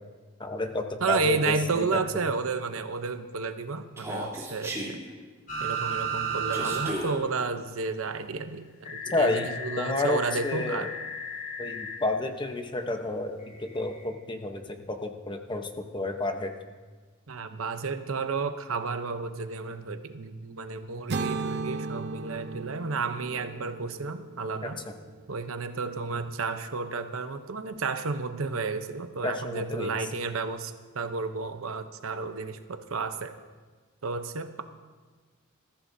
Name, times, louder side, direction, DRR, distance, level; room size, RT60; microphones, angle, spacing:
voice 1, 0.4-1.8 9.1-9.5 9.8-10.9 11.6-14.6 14.9-16.5 24.6-24.7 29.2-29.9, left 2 dB, 25° left, 5 dB, 0.9 m, -30 dB
voice 2, 1.0-5.0 5.6-10.9 17.3-24.8 25.3-33.4 34.0-34.6, right 4 dB, 85° right, 9 dB, 0.8 m, -32 dB
Human voice, 4.0-4.9 6.5-7.1, equal, 15° right, 3.2 m, -34 dB
sound 1, 5.5-6.9 7.2-7.3 8.8-12.0 13.7-13.8, right 3 dB, 45° left, 4.1 m, -33 dB
sound 2, 21.1-25.1, right 3 dB, 55° right, 0.6 m, -35 dB
20.5 x 14.5 x 2.7 m, 1.4 s
head